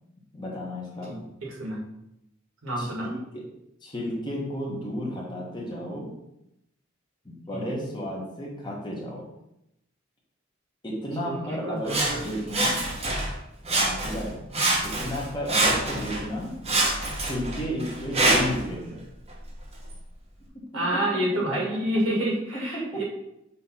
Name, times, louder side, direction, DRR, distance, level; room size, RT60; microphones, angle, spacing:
voice 1, 0.3-1.2 2.8-3.5 3.8-6.2 7.2-9.3 10.8-12.9 13.7-14.5 14.8-16.6 17.2-19.1 20.5-21.0 21.5-21.8 22.5-23.0, equal, 20° left, -3 dB, 1.4 m, -33 dB
voice 2, 1.5-1.8 2.6-3.1 7.5-7.8 11.2-12.1 20.7-23.0, right 1 dB, 70° right, -3 dB, 1.9 m, -28 dB
Sawing, 11.9-13.3 13.6-14.3 14.5-16.2 16.6-18.6 19.3-19.4, right 2 dB, 30° right, 1.1 m, -25 dB
5.7 x 3.1 x 5.6 m, 0.84 s
head